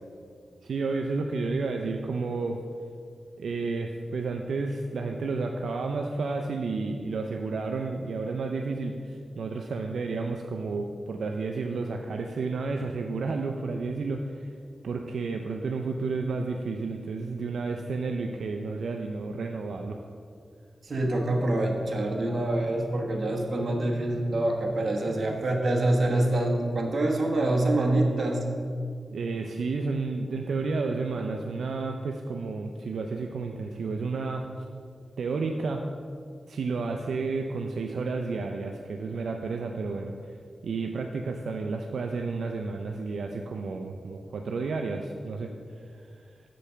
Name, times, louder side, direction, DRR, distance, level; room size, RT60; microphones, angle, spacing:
voice 1, 0.6-2.6 3.4-14.5 14.8-20.0 29.1-34.5 35.2-35.8 36.5-40.3 40.6-45.5 45.9-46.1, right 4 dB, 85° right, 3 dB, 0.4 m, -31 dB
voice 2, 20.8-28.4, right 1 dB, 55° right, 0 dB, 1.1 m, -26 dB
6.7 x 5.1 x 5.6 m, 2.3 s
wide cardioid pair, 105°, 0 cm